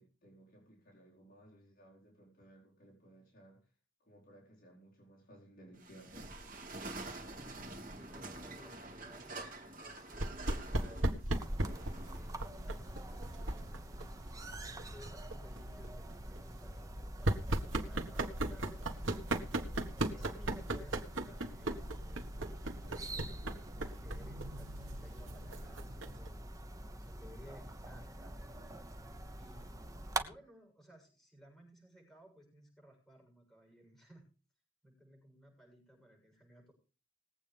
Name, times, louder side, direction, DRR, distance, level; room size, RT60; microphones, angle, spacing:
voice 1, 0.0-3.7 4.0-6.3 28.5-28.9, right 1 dB, 45° left, 4.5 m, -59 dB
sound 1, 5.8-16.2, right 2 dB, 45° right, 2.7 m, -48 dB
voice 2, 7.3-11.3 12.1-14.0 14.7-19.3 20.1-22.3 23.1-26.4 26.7-28.4 29.4-34.3 34.8-36.7, equal, ahead, 7.2 m, -59 dB
sound 2, 10.1-26.3, right 1 dB, 70° right, 1.6 m, -38 dB
sound 3, 11.3-30.2, right 1 dB, 15° right, 1.0 m, -46 dB
20.5 x 8.3 x 3.5 m
head